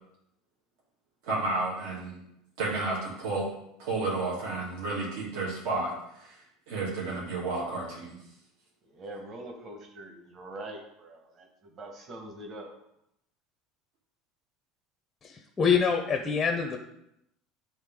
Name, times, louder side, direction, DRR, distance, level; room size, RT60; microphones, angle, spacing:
voice 1, 1.2-2.2 2.6-3.5 3.8-8.2, right 3 dB, 80° right, -6 dB, 2.4 m, -32 dB
voice 2, 8.8-12.7, right 1 dB, 30° right, 2 dB, 1.2 m, -43 dB
voice 3, 15.6-16.8, left 6 dB, 15° left, 3 dB, 0.6 m, -24 dB
9.9 x 3.5 x 3.6 m, 0.79 s
cardioid pair, 170°, 0 cm